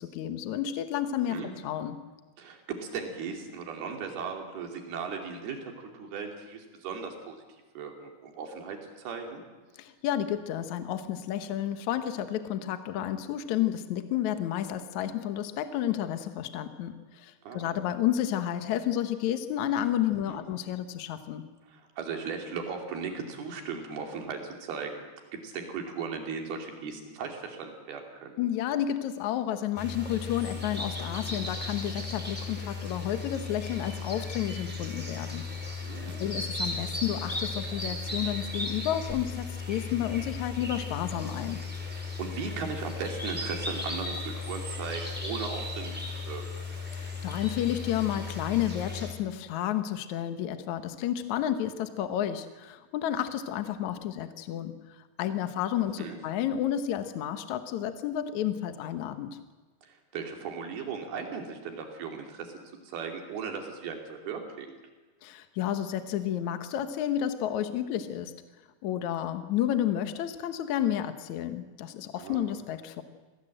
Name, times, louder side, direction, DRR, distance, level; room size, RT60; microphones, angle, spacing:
voice 1, 0.0-2.0 9.8-21.4 28.4-35.4 36.2-41.6 46.9-59.4 65.2-68.3 68.8-73.0, left 11 dB, 70° left, 9 dB, 1.8 m, -31 dB
voice 2, 2.4-7.4 7.7-9.4 17.4-17.7 20.3-20.4 21.7-25.1 25.4-28.3 35.8-36.2 41.9-46.5 56.0-56.2 59.8-62.5 62.8-64.7 72.2-72.5, right 5 dB, 70° right, 3 dB, 4.7 m, -37 dB
sound 1, 29.8-49.1, left 3 dB, ahead, 4.0 m, -36 dB
25.5 x 18.0 x 7.8 m, 1.3 s
omnidirectional pair, 4.7 m